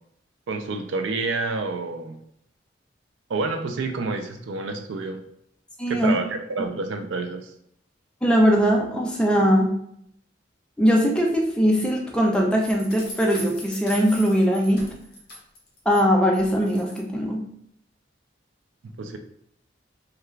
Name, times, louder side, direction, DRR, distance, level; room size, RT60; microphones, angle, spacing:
voice 1, 0.5-2.2 3.3-5.2 5.9-7.5 19.0-19.2, right 3 dB, 90° right, 6 dB, 0.4 m, -28 dB
voice 2, 5.8-6.2 8.2-9.8 10.8-14.9 15.9-17.5, equal, 5° left, -1 dB, 0.4 m, -20 dB
sound 1, 12.6-16.0 16.3-17.0, left 1 dB, 50° left, 0.7 m, -40 dB
2.3 x 2.3 x 3.1 m, 0.71 s
head